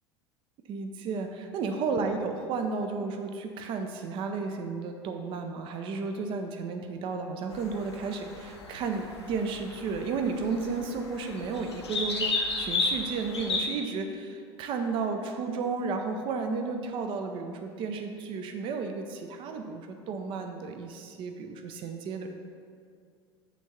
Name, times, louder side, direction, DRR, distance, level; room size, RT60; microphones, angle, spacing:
voice 1, 0.7-22.3, right 4 dB, 35° right, 6 dB, 0.6 m, -33 dB
sound 1, 7.5-13.6, left 3 dB, 75° left, 1.1 m, -33 dB
9.1 x 3.6 x 5.7 m, 2.2 s
figure-of-eight pair, 75°, 14 cm